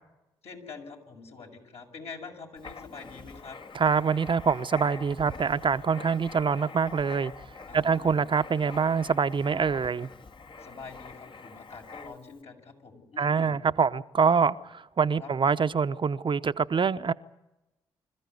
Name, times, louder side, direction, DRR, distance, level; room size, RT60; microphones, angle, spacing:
voice 1, 0.4-3.6 7.7-8.2 10.6-13.6 15.2-15.3, left 4 dB, 60° left, 2 dB, 6.8 m, -45 dB
Writing, 2.6-12.4, left 4 dB, 45° left, 1.9 m, -45 dB
voice 2, 3.7-7.3 7.7-10.1 13.2-17.1, right 6 dB, 45° right, 11 dB, 0.9 m, -25 dB
26.0 x 14.5 x 9.6 m, 0.96 s
hypercardioid pair, 45°, 12 cm